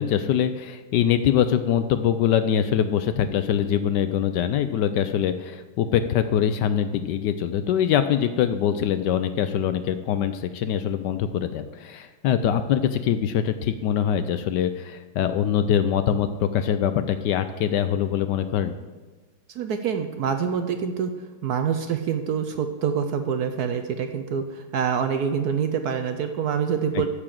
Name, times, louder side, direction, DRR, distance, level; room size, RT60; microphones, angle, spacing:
voice 1, 0.0-18.7 26.9-27.1, left 9 dB, 75° left, 10 dB, 1.1 m, -23 dB
voice 2, 19.5-21.1 21.4-27.1, right 7 dB, 65° right, 7 dB, 1.0 m, -26 dB
13.5 x 4.9 x 7.5 m, 1.3 s
omnidirectional pair, 2.1 m